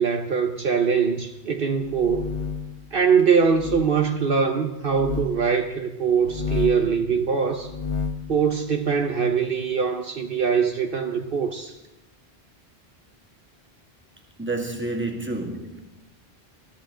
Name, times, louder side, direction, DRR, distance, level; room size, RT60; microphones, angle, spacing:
voice 1, 0.0-2.3 2.9-7.7 8.3-11.8, right 6 dB, 60° right, 1.1 m, -22 dB
sound 1, 1.8-2.8 3.5-3.9 4.9-5.3 6.2-6.9 7.6-8.3, left 6 dB, 30° left, 0.9 m, -30 dB
voice 2, 14.4-15.8, right 2 dB, 10° right, 2.0 m, -29 dB
22.0 x 13.5 x 3.8 m
omnidirectional pair, 1.1 m